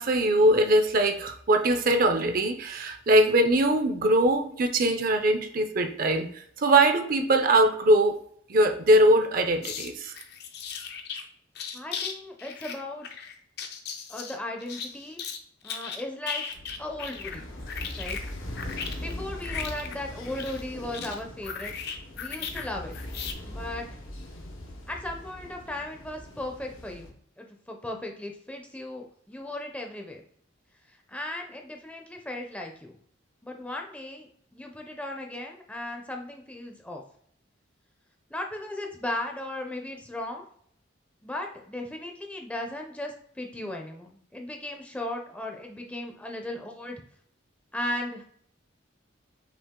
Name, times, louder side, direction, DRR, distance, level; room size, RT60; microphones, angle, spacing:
voice 1, 0.0-8.2 8.5-10.1, right 1 dB, 45° right, 6 dB, 0.5 m, -22 dB
sound 1, 9.6-9.9 10.1-11.2 11.6-12.1 12.4-15.4 15.6-17.4 17.7-22.7 22.9-23.3, left 6 dB, 55° left, 0.6 m, -37 dB
voice 2, 11.7-13.1 14.1-15.3 15.6-16.4 16.8-17.5 18.0-18.2 19.0-21.7 22.2-22.9 23.4-23.9 24.9-30.2 30.9-33.0 33.4-37.0 38.3-40.4 41.2-47.0 47.7-48.3, left 1 dB, 5° left, 2 dB, 0.5 m, -36 dB
sound 2, 16.5-27.1, left 1 dB, 90° left, 1.0 m, -40 dB
5.7 x 2.4 x 3.6 m, 0.63 s
head